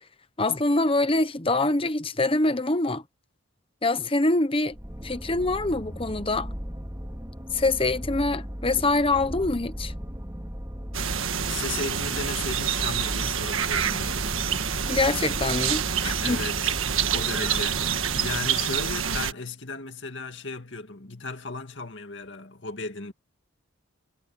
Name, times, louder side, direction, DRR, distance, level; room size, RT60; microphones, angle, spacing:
voice 1, 0.4-3.0 3.8-4.7 5.0-6.5 7.5-9.9 14.9-16.4, left 2 dB, 25° left, 1.0 m, -24 dB
sound 1, 4.7-18.4, equal, 15° right, 3.5 m, -37 dB
sound 2, 10.9-19.3, right 8 dB, 75° right, 1.5 m, -27 dB
voice 2, 11.5-14.5 16.2-16.8 17.1-17.8 18.2-23.1, left 3 dB, 55° left, 2.4 m, -35 dB
head